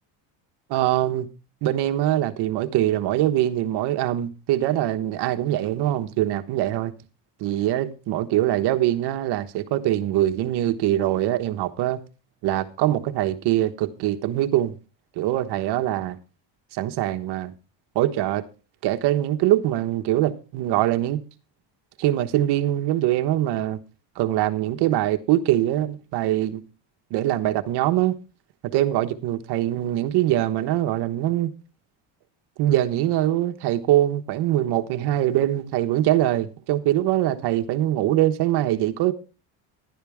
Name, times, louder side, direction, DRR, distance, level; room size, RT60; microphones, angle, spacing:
voice 1, 0.7-1.3 1.6-6.9 7.4-12.0 12.4-14.8 15.2-16.2 16.7-17.5 17.9-18.4 18.8-21.2 22.0-23.8 24.1-26.6 27.1-28.2 28.6-31.5 32.6-39.1, right 13 dB, 65° right, 1.3 m, -23 dB
11.5 x 11.5 x 3.5 m
cardioid pair, 160°, 44 cm